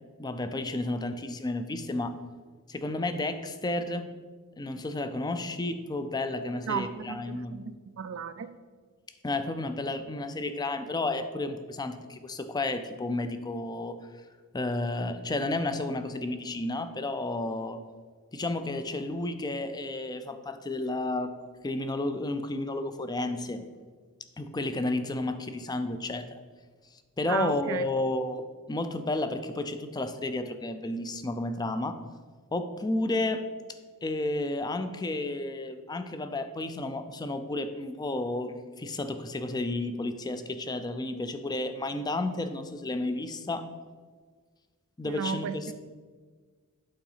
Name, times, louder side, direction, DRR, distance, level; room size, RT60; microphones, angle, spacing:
voice 1, 0.2-2.2 2.7-4.1 4.6-7.5 9.2-13.9 14.5-17.8 18.3-21.3 21.6-23.7 24.4-26.4 27.2-28.4 28.7-32.0 32.5-33.4 34.0-43.7 45.0-45.5, left 2 dB, 20° left, 9 dB, 0.4 m, -32 dB
voice 2, 6.7-8.5 27.3-27.8 45.1-45.6, right 6 dB, 65° right, 12 dB, 0.4 m, -34 dB
8.8 x 3.9 x 5.6 m, 1.5 s
head